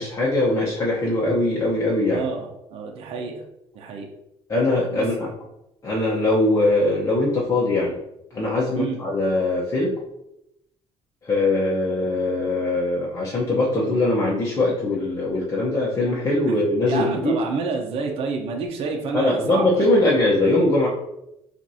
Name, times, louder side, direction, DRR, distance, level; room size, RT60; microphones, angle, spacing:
voice 1, 0.0-2.2 4.5-5.3 5.8-7.9 8.3-10.0 11.2-17.4 19.1-20.9, left 2 dB, 30° left, -6 dB, 0.9 m, -21 dB
voice 2, 2.1-3.5 3.7-4.1 4.9-5.1 8.8-9.0 16.9-20.1, right 4 dB, 65° right, 2 dB, 0.8 m, -29 dB
5.8 x 2.6 x 2.7 m, 0.85 s
cardioid pair, 140°, 11 cm